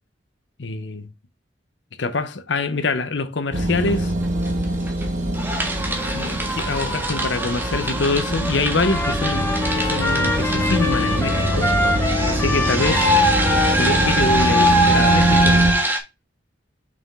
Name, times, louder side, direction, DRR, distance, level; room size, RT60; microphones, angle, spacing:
voice 1, 0.6-1.1 2.0-4.1 6.1-11.8 12.3-13.1 13.7-15.7, left 3 dB, 70° left, 0.8 m, -25 dB
sound 1, 3.5-15.7, right 1 dB, 45° right, 1.7 m, -23 dB
sound 2, 3.9-4.0 4.2-5.0 5.3-16.0, right 1 dB, 10° right, 1.5 m, -23 dB
Trumpet, 8.8-15.9, left 2 dB, 15° left, 1.3 m, -27 dB
6.2 x 4.6 x 3.6 m
head